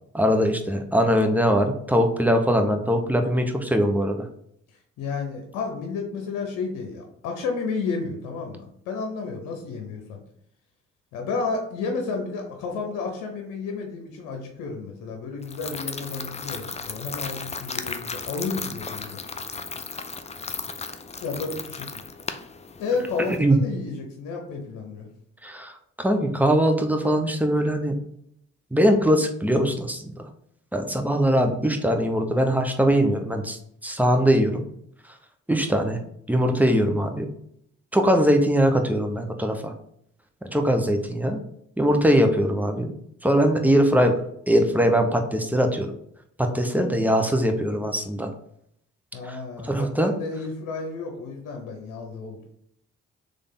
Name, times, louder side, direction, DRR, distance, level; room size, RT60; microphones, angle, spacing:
voice 1, 0.1-4.2 23.3-23.6 25.4-28.0 28.7-30.2 30.7-34.6 35.5-36.0 36.3-37.3 37.9-39.7 40.5-41.4 41.8-42.9 43.2-44.1 44.5-45.9 46.4-48.3 49.2-49.4 49.6-50.1, equal, 5° right, 5 dB, 0.9 m, -21 dB
voice 2, 5.0-10.2 11.1-19.2 21.2-22.0 22.8-25.1 49.1-52.5, left 4 dB, 85° left, 3 dB, 0.8 m, -31 dB
sound 1, 15.4-23.4, left 4 dB, 20° left, 0.5 m, -35 dB
3.5 x 3.4 x 4.0 m, 0.72 s
supercardioid pair, 55°, 31 cm